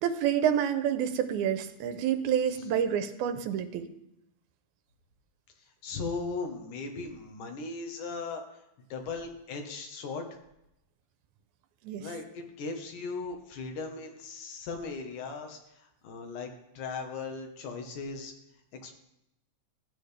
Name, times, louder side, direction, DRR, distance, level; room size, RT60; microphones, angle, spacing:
voice 1, 0.0-3.9 11.8-12.1, right 9 dB, 85° right, 9 dB, 2.1 m, -28 dB
voice 2, 5.8-8.4 8.9-10.3 12.0-18.3 18.7-18.9, left 4 dB, 85° left, 4 dB, 2.8 m, -38 dB
14.0 x 8.6 x 3.3 m, 0.84 s
omnidirectional pair, 3.5 m